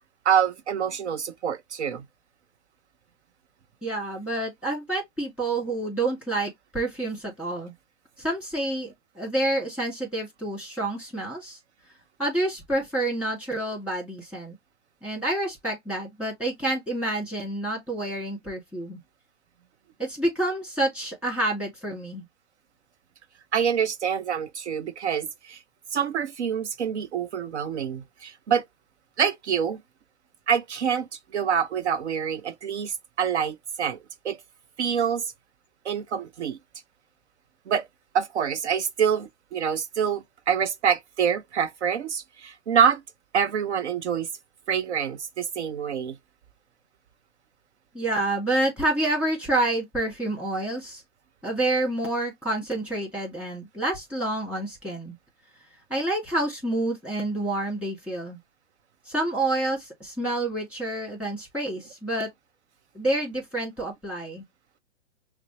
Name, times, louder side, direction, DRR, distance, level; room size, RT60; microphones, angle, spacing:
voice 1, 0.2-2.0 23.5-25.6 25.9-28.7 29.2-29.8 30.5-34.0 34.2-34.4 34.8-35.3 35.8-36.6 37.7-37.9 38.1-43.0 43.3-44.3 44.7-46.2, right 7 dB, 75° right, 0.7 m, -26 dB
voice 2, 3.8-7.7 8.2-11.6 12.2-14.6 15.0-19.0 20.0-22.2 47.9-51.0 51.4-55.1 55.9-58.4 59.1-62.3 62.9-64.4, right 2 dB, 5° right, 2.2 m, -28 dB
5.8 x 2.1 x 2.9 m
hypercardioid pair, 130°, 34 cm